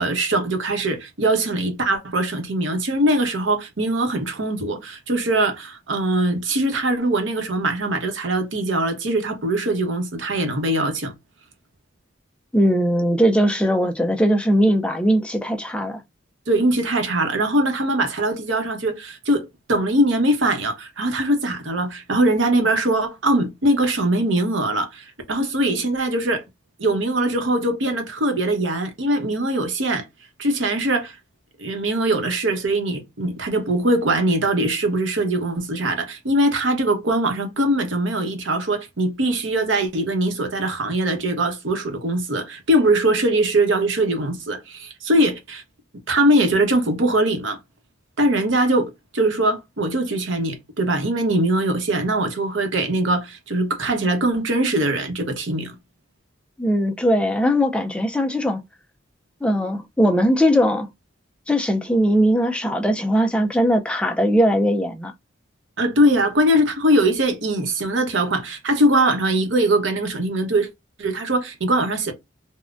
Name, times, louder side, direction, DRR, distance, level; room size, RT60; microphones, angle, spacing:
voice 1, 0.0-11.1 16.5-26.4 26.8-30.0 30.4-31.2 31.6-45.6 46.1-47.6 48.2-55.8 65.8-70.7 71.0-72.1, right 1 dB, 75° right, 0.8 m, -21 dB
voice 2, 12.5-16.0 56.6-58.6 59.4-60.9 61.5-65.1, equal, 5° left, 0.3 m, -19 dB
3.6 x 2.1 x 2.4 m
head